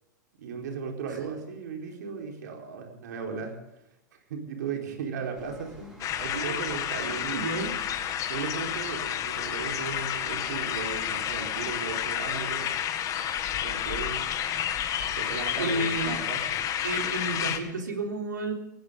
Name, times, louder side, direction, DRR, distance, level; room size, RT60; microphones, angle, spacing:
voice 1, 0.4-3.6 4.3-7.4 8.3-12.7 13.6-14.2 15.2-16.6, right 5 dB, 65° right, 2 dB, 4.5 m, -36 dB
sound 1, 5.3-12.4, right 2 dB, 10° right, 7.2 m, -50 dB
sound 2, 6.0-17.6, left 10 dB, 35° left, 1.9 m, -30 dB
voice 2, 6.3-6.6 7.3-7.7 15.6-16.2 16.8-18.5, right 2 dB, 85° right, 3 dB, 3.8 m, -31 dB
19.5 x 19.0 x 3.9 m, 0.86 s
hypercardioid pair, 100°, 10 cm